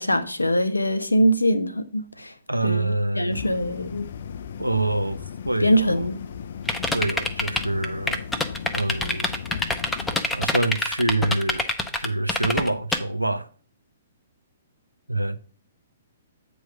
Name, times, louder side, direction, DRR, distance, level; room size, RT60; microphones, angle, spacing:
voice 1, 0.0-2.3 2.6-4.1 5.6-6.2, equal, 80° left, 0.7 m, -23 dB
voice 2, 2.5-3.5 4.6-5.2 5.4-6.1 6.9-8.3 8.7-9.3 10.3-11.6 12.0-13.5 15.1-15.4, right 2 dB, 90° right, 0.5 m, -26 dB
sound 1, 3.3-10.2, left 7 dB, 55° left, 0.3 m, -36 dB
sound 2, 6.7-13.0, left 2 dB, 5° left, 0.6 m, -25 dB
8.3 x 3.1 x 6.2 m
figure-of-eight pair, 120°, 0 cm